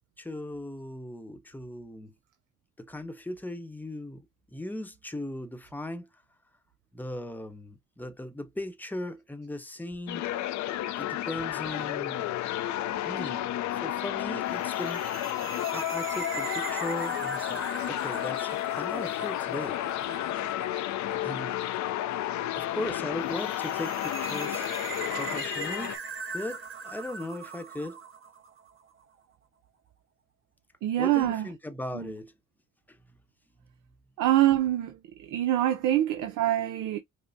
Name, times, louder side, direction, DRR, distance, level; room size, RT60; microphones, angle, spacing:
voice 1, 0.2-2.1 2.8-4.3 4.5-6.1 6.9-10.2 11.0-12.3 13.0-15.0 15.3-19.8 21.2-21.6 22.5-24.7 25.2-25.9 26.3-28.0 31.0-32.3 32.9-33.0, left 1 dB, 5° left, 0.8 m, -38 dB
sound 1, 10.1-26.0, left 13 dB, 70° left, 0.5 m, -32 dB
sound 2, 14.5-28.8, right 5 dB, 45° right, 1.0 m, -41 dB
voice 2, 30.8-31.5 31.9-32.2 34.2-37.0, right 13 dB, 85° right, 0.6 m, -25 dB
5.3 x 2.0 x 2.5 m
cardioid pair, 90°, 30 cm